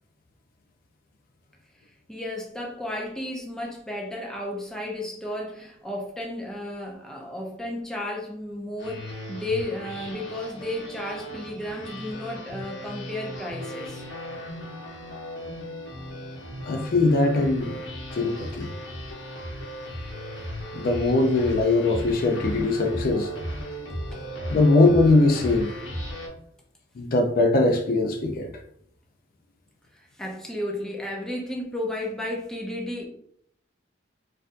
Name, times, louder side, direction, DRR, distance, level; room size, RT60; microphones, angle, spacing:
voice 1, 2.1-14.0 24.1-24.2 30.2-33.0, left 1 dB, 5° left, 0.6 m, -33 dB
sound 1, 8.8-26.3, equal, 75° left, 1.0 m, -36 dB
voice 2, 16.7-17.8 18.1-18.7 20.7-23.3 24.5-25.7 27.0-28.5, left 2 dB, 50° left, 0.4 m, -21 dB
4.2 x 2.5 x 2.5 m
head